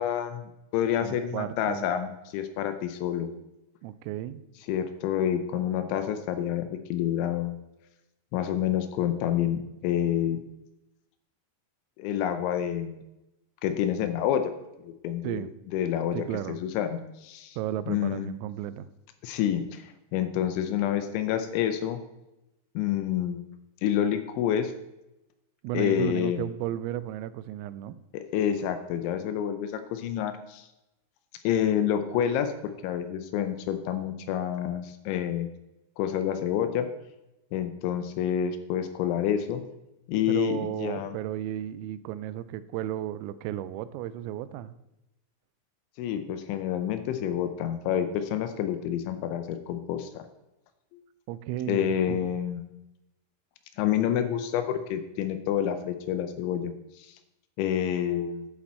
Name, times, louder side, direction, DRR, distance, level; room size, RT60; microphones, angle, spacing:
voice 1, 0.0-3.3 4.7-7.6 8.3-10.4 12.0-13.0 13.6-14.5 14.8-15.4 15.7-16.2 16.5-17.6 17.9-18.3 19.2-22.0 22.8-23.4 23.8-24.7 25.7-26.5 28.1-30.7 31.4-35.5 36.0-36.9 37.5-39.6 40.1-41.1 46.0-50.2 51.7-52.6 53.8-56.7 57.0-57.1 57.6-58.5, left 10 dB, 80° left, 9 dB, 2.8 m, -28 dB
voice 2, 1.0-1.9 3.8-4.4 15.2-15.5 16.1-16.6 17.6-18.9 25.6-28.0 40.3-44.7 51.3-52.4, right 12 dB, 90° right, 14 dB, 3.3 m, -34 dB
11.5 x 8.8 x 4.3 m, 0.94 s
omnidirectional pair, 5.8 m